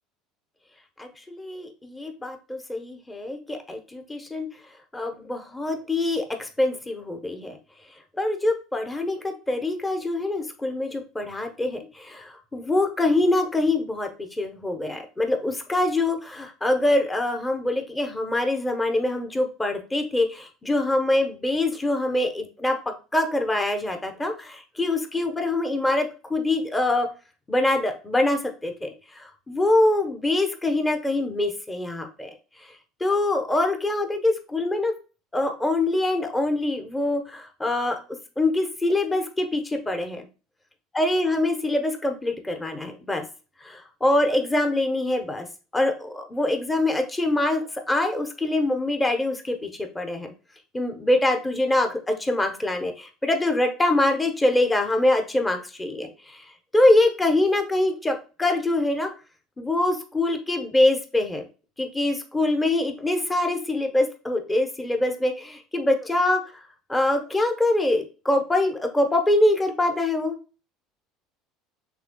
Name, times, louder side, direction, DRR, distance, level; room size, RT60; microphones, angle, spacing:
voice 1, 1.0-4.5 4.9-7.6 8.2-27.1 27.5-32.3 33.0-34.9 35.3-38.0 38.4-40.3 40.9-43.2 43.6-45.5 45.7-50.3 50.7-56.4 56.7-59.1 59.6-61.5 61.8-66.4 66.9-70.4, left 2 dB, 15° left, 5 dB, 1.0 m, -24 dB
5.9 x 3.7 x 2.3 m, 0.33 s
hypercardioid pair, 85°, 0 cm